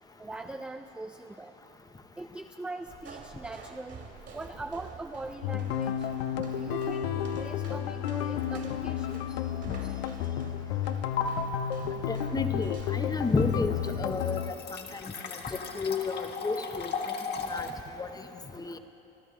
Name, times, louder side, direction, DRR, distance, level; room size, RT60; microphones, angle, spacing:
voice 1, 0.2-1.5 2.2-6.1 6.5-10.5, right 2 dB, 5° right, 6 dB, 0.3 m, -42 dB
sound 1, 2.9-13.6, right 5 dB, 35° right, 2.1 m, -49 dB
sound 2, 5.4-14.5, left 9 dB, 80° left, 0.8 m, -32 dB
sound 3, 8.4-8.7 9.2-9.3 11.2-11.3 13.0-13.1 13.4-17.7, left 6 dB, 35° left, 1.5 m, -36 dB
voice 2, 12.1-14.6 15.0-16.9 17.5-17.7 18.0-18.1 18.5-18.8, left 3 dB, 10° left, 8 dB, 0.8 m, -31 dB
27.5 x 12.0 x 3.7 m, 3.0 s
supercardioid pair, 100°, 30 cm